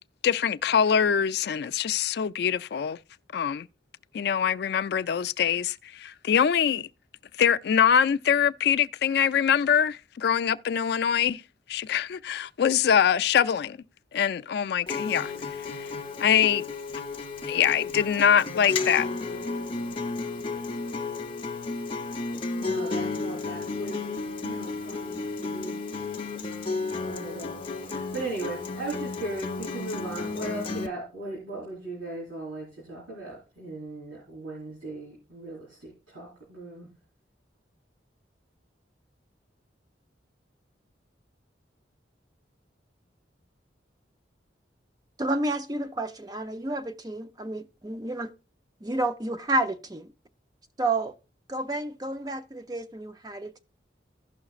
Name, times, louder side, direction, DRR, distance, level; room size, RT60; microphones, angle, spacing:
voice 1, 0.2-3.0 3.3-3.7 4.1-6.9 7.4-11.4 11.7-13.8 14.1-15.9 16.2-16.6 17.5-19.1, left 8 dB, 60° left, 0.3 m, -24 dB
Acoustic guitar, 14.9-30.9, left 3 dB, 30° left, 0.7 m, -33 dB
voice 2, 22.6-25.8 27.1-36.9, right 2 dB, 80° right, 3.8 m, -38 dB
voice 3, 45.2-48.3 48.8-50.1 50.8-51.1 51.5-53.6, right 2 dB, 20° right, 0.6 m, -30 dB
16.0 x 5.7 x 2.4 m
head